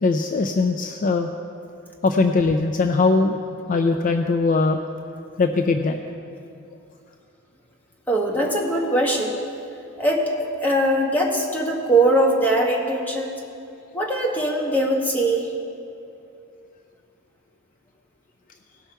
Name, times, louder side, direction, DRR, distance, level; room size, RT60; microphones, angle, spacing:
voice 1, 0.0-1.3 2.0-3.3 3.7-4.8 5.4-6.0, left 3 dB, 40° left, 5 dB, 0.4 m, -20 dB
voice 2, 8.1-9.3 10.0-13.4 13.9-15.5, right 1 dB, 10° left, -2 dB, 1.2 m, -21 dB
17.0 x 5.8 x 4.5 m, 2.6 s
head